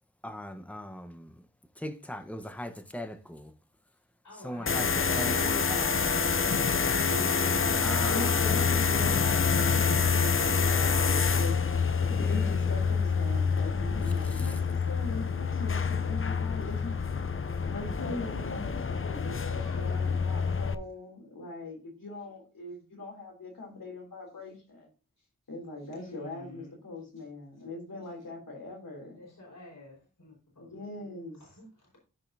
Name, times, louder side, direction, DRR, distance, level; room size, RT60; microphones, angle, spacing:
voice 1, 0.2-1.3 1.8-3.5 4.4-4.9 5.1-6.2 7.6-9.5 12.1-12.7 14.0-14.5, equal, 5° left, 1.1 m, -40 dB
voice 2, 4.2-8.4 10.1-11.1 19.6-20.6 25.2-25.3 25.9-26.7 27.2-27.3 29.0-30.7 31.4-32.0, left 1 dB, 65° left, 4.8 m, -47 dB
sound 1, 4.7-20.7, left 5 dB, 40° left, 0.6 m, -27 dB
voice 3, 7.0-11.6 12.2-14.5 14.8-17.0 17.6-24.9 25.5-29.2 30.6-31.4, left 2 dB, 85° left, 3.3 m, -41 dB
14.0 x 5.4 x 2.7 m
wide cardioid pair, 55°, 33 cm